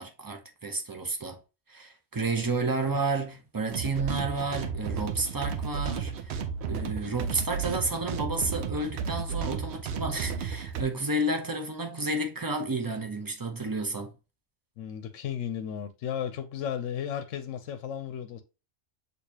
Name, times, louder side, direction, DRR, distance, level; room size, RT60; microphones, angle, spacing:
voice 1, 0.0-1.4 1.7-6.4 6.7-14.1, right 2 dB, 20° right, 0.6 m, -31 dB
sound 1, 3.7-10.8, right 6 dB, 65° right, 0.8 m, -33 dB
voice 2, 14.8-18.4, left 9 dB, 80° left, 1.0 m, -34 dB
6.4 x 2.8 x 2.8 m
omnidirectional pair, 1.3 m